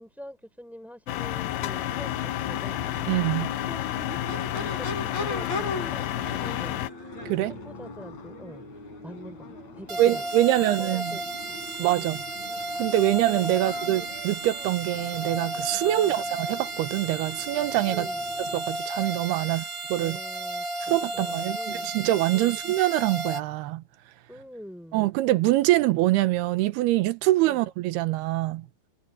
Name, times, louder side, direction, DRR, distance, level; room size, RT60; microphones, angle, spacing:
voice 1, 0.0-2.8 3.7-6.8 7.5-10.2 10.5-11.6 12.0-12.2 13.6-13.7 15.9-16.2 17.9-18.2 19.4-19.7 20.0-21.9 22.3-22.6 24.3-25.0 27.5-27.6, equal, ahead, 5.0 m, -45 dB
sound 1, 1.1-6.9, left 13 dB, 80° left, 3.0 m, -30 dB
Crowd / Race car auto racing / Accelerating revving vroom, 1.7-18.7, left 2 dB, 45° left, 6.9 m, -40 dB
voice 2, 3.1-3.5 7.3-7.5 10.0-11.2 11.8-12.2 12.8-18.1 18.5-19.6 19.9-20.2 20.8-23.8 24.9-28.7, right 16 dB, 80° right, 3.0 m, -24 dB
sound 2, 9.9-23.4, right 2 dB, 30° right, 3.0 m, -33 dB
omnidirectional pair, 4.6 m